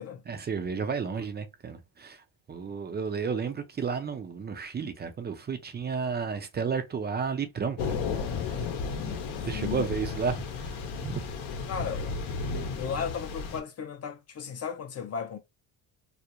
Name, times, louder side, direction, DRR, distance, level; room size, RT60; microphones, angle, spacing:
voice 1, 0.3-8.7 9.4-11.2, right 5 dB, 25° right, 0.4 m, -33 dB
Thunder / Rain, 7.8-13.6, left 5 dB, 65° left, 0.8 m, -33 dB
voice 2, 9.5-9.9 11.7-12.3 12.8-15.4, left 7 dB, 30° left, 0.5 m, -35 dB
2.4 x 2.1 x 2.8 m
cardioid pair, 90°, 49 cm